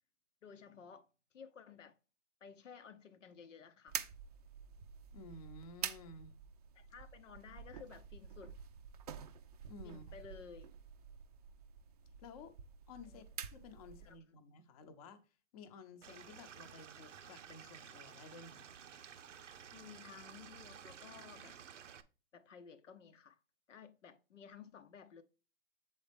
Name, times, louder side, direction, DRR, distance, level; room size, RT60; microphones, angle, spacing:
voice 1, 0.4-1.1 1.3-2.0 2.4-4.0 6.8-8.6 9.8-10.7 13.0-13.2 14.0-14.2 19.7-21.6 22.3-23.4 23.7-25.2, left 6 dB, 90° left, 0.8 m, -55 dB
sound 1, 3.9-14.2, right 8 dB, 35° right, 0.4 m, -48 dB
voice 2, 5.1-6.3 9.7-10.1 12.2-12.5 12.9-13.2 13.5-15.2 15.5-18.7, left 3 dB, 30° left, 0.7 m, -54 dB
Stream / Liquid, 16.0-22.0, right 8 dB, 90° right, 0.7 m, -54 dB
7.1 x 4.2 x 3.4 m
hypercardioid pair, 145°, 36 cm